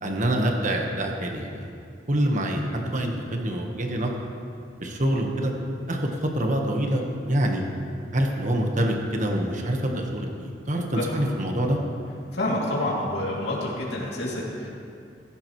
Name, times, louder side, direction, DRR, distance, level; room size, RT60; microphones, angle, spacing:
voice 1, 0.0-1.7 2.1-4.2 4.8-5.5 5.9-7.6 8.1-11.8, right 1 dB, 45° right, 2 dB, 1.4 m, -26 dB
voice 2, 12.3-14.7, left 1 dB, 65° left, -5 dB, 2.9 m, -28 dB
15.5 x 14.5 x 3.2 m, 2.4 s
head